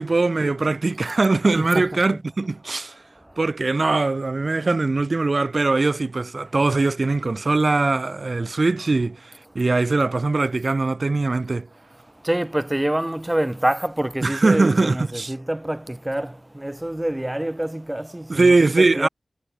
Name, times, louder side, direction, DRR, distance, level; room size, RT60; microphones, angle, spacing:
voice 1, 0.0-2.9 3.4-11.7 14.2-15.3 18.3-19.1, right 3 dB, 55° right, 1.9 m, -21 dB
voice 2, 1.5-2.2 12.2-19.1, right 1 dB, 15° right, 0.6 m, -26 dB
wide cardioid pair, 70°, 0 cm